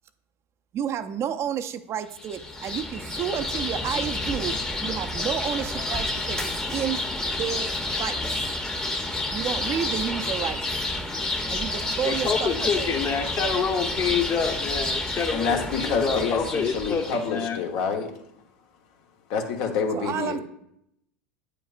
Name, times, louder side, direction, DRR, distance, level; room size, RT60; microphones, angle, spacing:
voice 1, 0.7-7.0 7.3-7.7 8.0-8.2 9.3-10.8 11.5-13.0 19.9-20.4, right 9 dB, 40° right, 10 dB, 0.5 m, -31 dB
sound 1, 2.2-17.3, left 2 dB, 10° left, 0.9 m, -29 dB
voice 2, 12.0-17.6, left 6 dB, 35° left, 3 dB, 1.1 m, -27 dB
voice 3, 15.3-18.1 19.3-20.4, left 5 dB, 60° left, 3 dB, 1.1 m, -27 dB
8.6 x 5.0 x 2.5 m, 0.77 s
hypercardioid pair, 95°, 7 cm